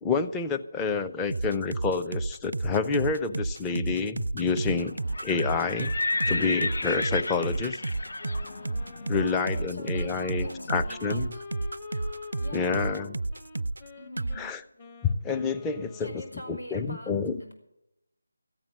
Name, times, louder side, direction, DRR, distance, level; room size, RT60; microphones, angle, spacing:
voice 1, 0.0-6.0 6.3-7.8 9.1-11.3 12.5-13.2 14.4-14.6 15.0-16.2 16.5-17.4, left 5 dB, 10° left, 6 dB, 0.5 m, -28 dB
sound 1, 1.3-13.9 14.2-14.4, right 2 dB, 70° right, 0.4 m, -31 dB
Livestock farm animals working animals, 5.0-10.8, left 2 dB, 60° left, 0.7 m, -33 dB
Wind instrument woodwind instrument, 8.2-16.6, left 3 dB, 25° left, 1.1 m, -46 dB
voice 2, 9.1-11.4 12.4-13.1 14.0-14.5 16.0-17.5, left 1 dB, 90° left, 3 dB, 5.5 m, -43 dB
14.0 x 8.9 x 7.3 m, 0.86 s
figure-of-eight pair, 160°, 0 cm